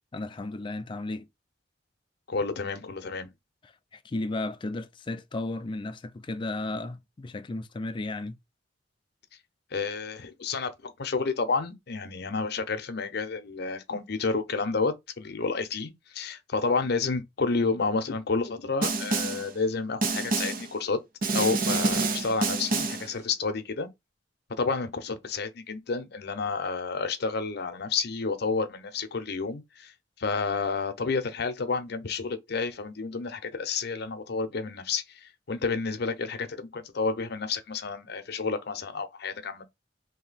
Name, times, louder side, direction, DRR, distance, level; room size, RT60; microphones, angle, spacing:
voice 1, 0.1-1.3 3.6-8.4, left 2 dB, 25° left, 0.4 m, -34 dB
voice 2, 2.3-3.3 9.7-21.0 21.3-23.9 24.6-29.9 30.2-39.7, left 4 dB, 60° left, 0.7 m, -30 dB
Snare drum, 18.8-19.5 20.0-20.7 21.2-23.1, right 3 dB, 50° right, 0.6 m, -27 dB
2.9 x 2.7 x 4.0 m
head